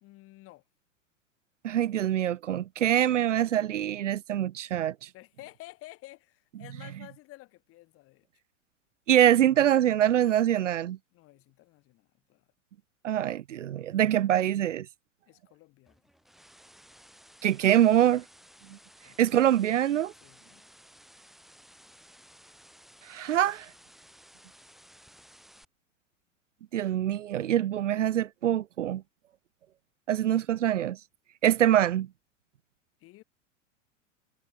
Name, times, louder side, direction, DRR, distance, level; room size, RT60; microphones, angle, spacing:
voice 1, 0.0-0.6 5.1-8.3 11.1-12.4 15.3-16.0 19.0-19.2 20.2-20.6 33.0-33.2, left 19 dB, 35° left, 3.0 m, -51 dB
voice 2, 1.6-5.1 9.1-11.0 13.0-14.9 17.4-18.2 19.2-20.1 23.0-23.7 26.7-29.0 30.1-31.0 31.4-32.1, right 11 dB, 70° right, 0.6 m, -24 dB
sound 1, 15.9-25.6, equal, ahead, 7.6 m, -56 dB
figure-of-eight pair, 90°, 39 cm